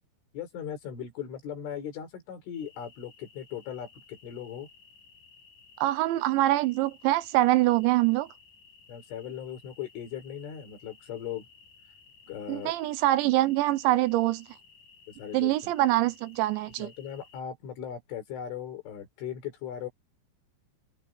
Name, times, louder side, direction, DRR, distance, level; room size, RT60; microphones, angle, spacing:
voice 1, 0.3-4.7 8.9-11.5 12.3-12.7 15.1-15.7 16.8-19.9, left 9 dB, 85° left, 7.1 m, -38 dB
sound 1, 2.5-17.4, left 5 dB, 40° left, 7.9 m, -57 dB
voice 2, 5.8-8.3 12.5-14.5 15.3-16.9, right 16 dB, 80° right, 3.1 m, -24 dB
omnidirectional pair, 5.4 m